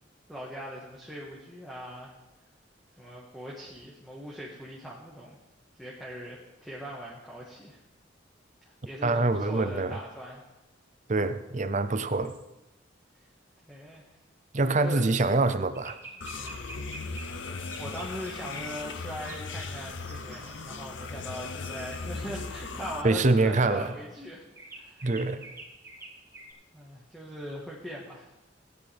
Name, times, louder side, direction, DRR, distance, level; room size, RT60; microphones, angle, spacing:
voice 1, 0.3-2.2 3.0-5.4 5.8-7.8 8.8-10.4 13.6-14.0 14.6-15.1 16.2-16.9 17.3-24.4 24.8-25.1 26.7-28.3, equal, ahead, -5 dB, 1.6 m, -40 dB
voice 2, 9.0-10.0 11.1-12.3 14.5-16.0 23.0-23.9 25.0-25.5, right 3 dB, 40° right, 11 dB, 0.6 m, -25 dB
sound 1, 12.2-12.4 15.7-17.4 17.6-18.7 19.2-19.8 20.1-20.8 21.3-22.1 24.6-26.5, right 2 dB, 15° right, 3.2 m, -48 dB
sound 2, 16.2-23.0, left 4 dB, 70° left, 0.7 m, -38 dB
17.0 x 10.0 x 3.5 m, 0.98 s
head